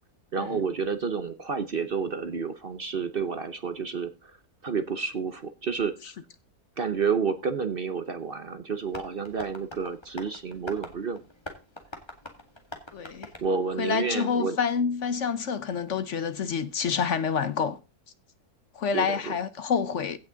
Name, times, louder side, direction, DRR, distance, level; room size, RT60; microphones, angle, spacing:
voice 1, 0.3-4.3 4.6-5.9 6.8-11.2 13.4-14.6 18.9-19.3, right 5 dB, 45° right, 0.9 m, -30 dB
Tap, 8.9-14.4, left 1 dB, 15° left, 2.1 m, -44 dB
voice 2, 12.9-13.3 13.8-17.8 18.7-20.2, left 6 dB, 55° left, 1.1 m, -28 dB
16.0 x 5.9 x 3.9 m
omnidirectional pair, 1.6 m